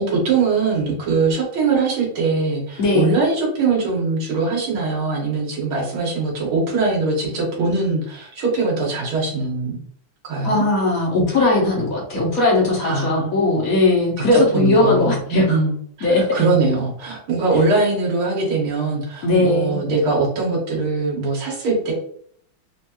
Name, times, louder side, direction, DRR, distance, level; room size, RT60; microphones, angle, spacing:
voice 1, 0.0-9.8 10.2-10.6 12.8-13.3 14.2-21.9, right 3 dB, 90° right, -3 dB, 2.2 m, -21 dB
voice 2, 2.8-3.2 10.4-15.6 16.0-16.2 19.2-19.8, left 2 dB, 55° left, -1 dB, 1.1 m, -18 dB
4.4 x 2.5 x 2.9 m, 0.63 s
omnidirectional pair, 2.2 m